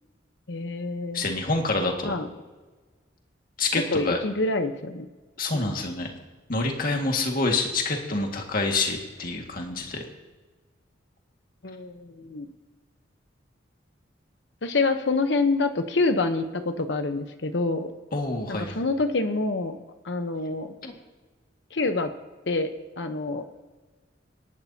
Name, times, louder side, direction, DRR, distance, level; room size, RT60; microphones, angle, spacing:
voice 1, 0.5-1.2 2.0-2.3 3.9-5.1 5.5-5.9 11.6-12.5 14.6-17.9 18.5-19.8 20.0-20.7 21.7-22.1 22.5-22.7 23.0-23.4, left 3 dB, 65° left, 7 dB, 0.9 m, -26 dB
voice 2, 1.1-2.1 3.6-4.2 5.4-6.1 6.5-10.0 18.1-18.8 20.8-20.9, left 3 dB, 50° left, 2 dB, 1.9 m, -27 dB
27.0 x 11.5 x 2.8 m, 1.3 s
head